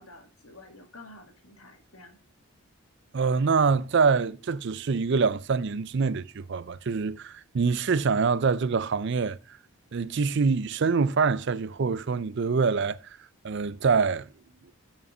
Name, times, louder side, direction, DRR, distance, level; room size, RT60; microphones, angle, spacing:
voice 1, 0.0-2.2, left 2 dB, 70° left, 1.9 m, -50 dB
voice 2, 3.1-9.4 9.9-13.0 13.4-14.3, right 5 dB, 50° right, 0.4 m, -25 dB
7.3 x 5.4 x 5.5 m
head